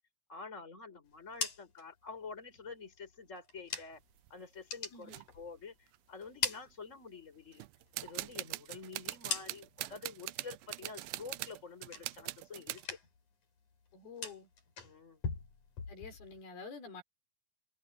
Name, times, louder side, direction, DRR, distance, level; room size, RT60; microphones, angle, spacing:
voice 1, 0.3-4.0 4.3-7.6 8.0-13.0 14.8-15.2, left 4 dB, 20° left, 5.6 m, -48 dB
sound 1, 1.1-4.2 4.5-5.8 6.1-7.4 7.8-9.9 10.3-10.8 11.1-12.4 12.7-13.3 13.6-16.4, left 5 dB, 55° left, 5.3 m, -43 dB
sound 2, 3.9-4.3 5.1-5.3 5.9-6.0 6.2-6.7 7.5-12.9, right 19 dB, 80° right, 2.4 m, -43 dB
voice 2, 4.9-5.2 13.9-14.5 15.9-17.0, left 4 dB, 80° left, 7.5 m, -48 dB
omnidirectional pair, 4.3 m